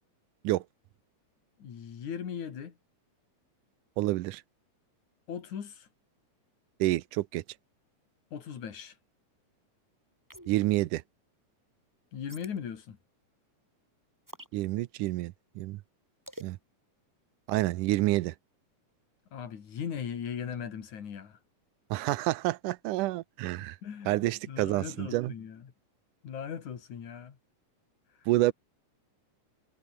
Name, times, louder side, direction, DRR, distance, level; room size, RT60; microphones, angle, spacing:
voice 1, 1.6-2.8 5.3-5.9 8.3-9.0 12.1-13.0 19.3-21.4 23.8-25.7 26.2-27.4 28.2-28.3, left 7 dB, 65° left, 3.9 m, -39 dB
voice 2, 4.0-4.4 6.8-7.4 10.5-11.0 14.5-15.8 16.4-16.6 17.5-18.3 21.9-23.8 24.1-25.3 28.3-28.5, right 17 dB, 85° right, 2.2 m, -28 dB
sound 1, 10.3-10.7 12.3-12.6 14.3-14.6 16.3-16.5, equal, 5° right, 5.4 m, -46 dB
omnidirectional pair, 3.7 m